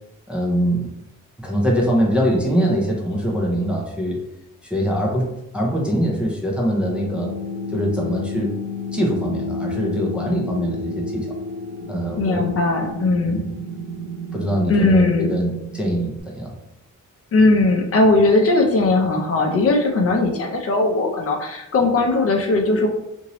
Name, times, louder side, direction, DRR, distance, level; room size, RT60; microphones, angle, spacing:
voice 1, 0.3-0.9 1.4-4.2 4.6-7.3 7.7-8.6 8.9-11.4 11.9-12.5 13.2-13.5 14.3-16.5, equal, 5° right, -3 dB, 0.4 m, -23 dB
sound 1, 6.8-16.2, left 2 dB, 25° right, 1.2 m, -31 dB
voice 2, 12.2-13.4 14.7-15.3 17.3-22.9, left 2 dB, 50° left, 1 dB, 0.5 m, -18 dB
2.9 x 2.6 x 2.9 m, 0.84 s
wide cardioid pair, 170°, 31 cm